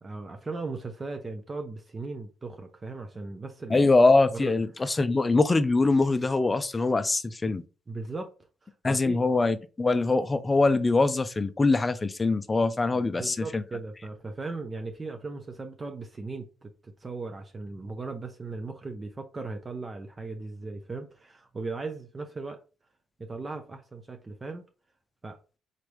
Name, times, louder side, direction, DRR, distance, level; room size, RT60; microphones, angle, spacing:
voice 1, 0.0-3.9 4.3-4.6 7.9-8.3 8.6-9.2 12.9-22.6 23.2-24.6 25.2-25.4, right 3 dB, 30° right, 0.6 m, -37 dB
voice 2, 3.7-7.6 8.8-13.6, left 3 dB, 25° left, 0.5 m, -23 dB
4.0 x 3.3 x 3.3 m
cardioid pair, 90°, 0 cm